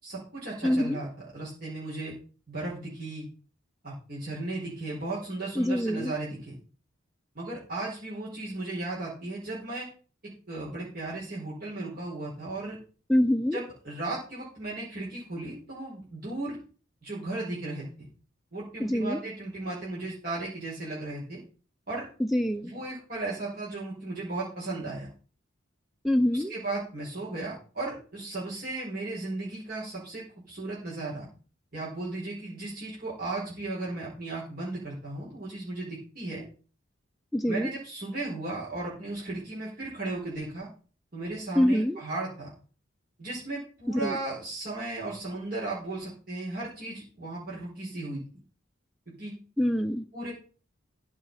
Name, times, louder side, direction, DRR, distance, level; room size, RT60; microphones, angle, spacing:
voice 1, 0.0-2.1 2.5-3.3 3.8-6.5 7.3-9.9 10.5-12.8 13.5-16.6 17.0-18.1 18.5-21.4 21.9-22.1 22.6-25.1 26.3-31.3 31.7-36.4 37.5-40.7 41.1-42.5 43.2-48.2 49.1-49.3 50.1-50.3, right 2 dB, 45° right, -6 dB, 4.8 m, -35 dB
voice 2, 0.6-1.0 5.6-6.1 13.1-13.6 18.8-19.2 22.2-22.7 26.0-26.5 37.3-37.7 41.6-42.0 43.9-44.2 49.6-50.1, equal, ahead, 7 dB, 0.5 m, -25 dB
14.5 x 6.0 x 5.6 m, 0.38 s
head